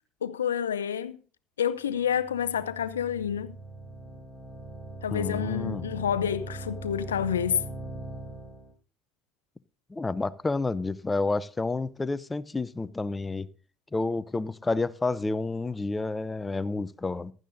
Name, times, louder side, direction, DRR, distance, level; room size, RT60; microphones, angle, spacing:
voice 1, 0.2-1.2 1.6-3.6 5.0-7.6, left 8 dB, 90° left, 0.6 m, -28 dB
sound 1, 1.9-8.7, right 2 dB, 25° right, 6.3 m, -41 dB
voice 2, 5.1-5.8 9.9-13.5 13.9-17.3, left 3 dB, 20° left, 0.6 m, -30 dB
15.5 x 12.0 x 2.6 m
hypercardioid pair, 70°, 0 cm